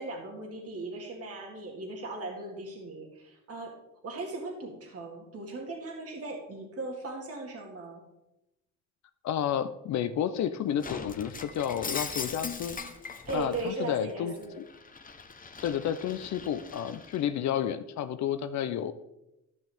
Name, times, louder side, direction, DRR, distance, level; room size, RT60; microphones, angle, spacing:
voice 1, 0.0-3.7 4.0-8.0 13.3-14.5, right 2 dB, 50° right, 0 dB, 2.0 m, -38 dB
voice 2, 9.2-12.8 13.3-14.6 15.6-18.9, left 9 dB, 65° left, 11 dB, 0.6 m, -31 dB
Shatter, 10.8-13.7 14.1-17.2, left 5 dB, 30° left, 1.0 m, -40 dB
13.5 x 6.3 x 3.5 m, 0.92 s
cardioid pair, 90°, 30 cm